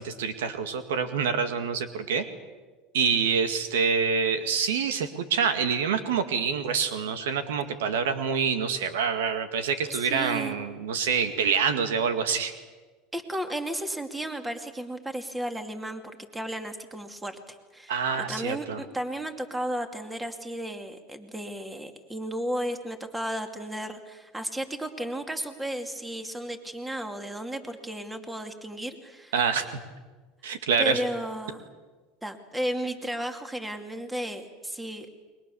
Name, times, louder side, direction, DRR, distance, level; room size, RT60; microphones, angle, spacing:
voice 1, 0.0-2.2 2.9-12.5 17.9-18.8 29.3-29.8 30.4-31.0, right 6 dB, 90° right, 9 dB, 2.1 m, -26 dB
voice 2, 9.9-10.5 13.1-29.3 30.8-31.6 32.2-35.1, right 1 dB, 10° right, 7 dB, 2.5 m, -34 dB
30.0 x 22.5 x 7.1 m, 1.3 s
supercardioid pair, 115°, 0 cm